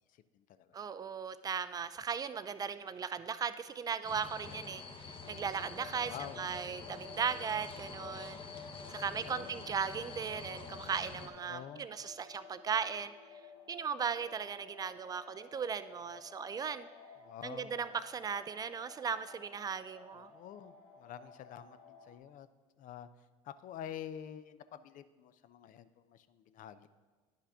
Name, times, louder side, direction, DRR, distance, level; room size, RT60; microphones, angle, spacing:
voice 1, 0.1-0.7 4.2-4.6 6.0-6.5 6.8-7.0 9.2-9.7 11.3-11.9 17.2-18.0 20.1-22.5 22.8-23.1 23.4-26.9, left 10 dB, 55° left, 13 dB, 0.5 m, -48 dB
voice 2, 0.7-8.4 8.9-13.1 13.7-16.9 17.4-20.3, right 6 dB, 20° right, 13 dB, 0.4 m, -37 dB
sound 1, 4.0-11.3, left 4 dB, 30° left, 0.9 m, -48 dB
sound 2, 5.2-22.2, left 5 dB, 75° left, 1.2 m, -53 dB
9.9 x 5.7 x 3.6 m, 1.4 s
supercardioid pair, 90°, 17 cm